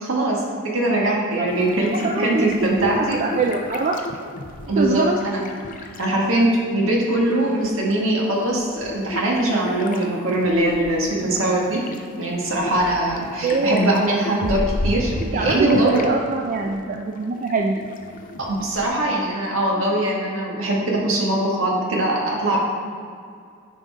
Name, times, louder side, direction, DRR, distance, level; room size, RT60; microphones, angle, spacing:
voice 1, 0.0-3.2 4.7-5.4 6.0-11.8 12.2-16.0 18.4-22.6, right 1 dB, 70° right, -3 dB, 1.7 m, -21 dB
sound 1, 1.4-6.5 6.7-16.1 16.4-18.9, left 1 dB, 40° left, 0.6 m, -34 dB
voice 2, 1.9-2.5 2.8-4.0 4.8-5.2 13.4-13.9 15.2-17.8, right 3 dB, 40° right, 2 dB, 0.4 m, -23 dB
10.0 x 5.3 x 3.6 m, 2.3 s
head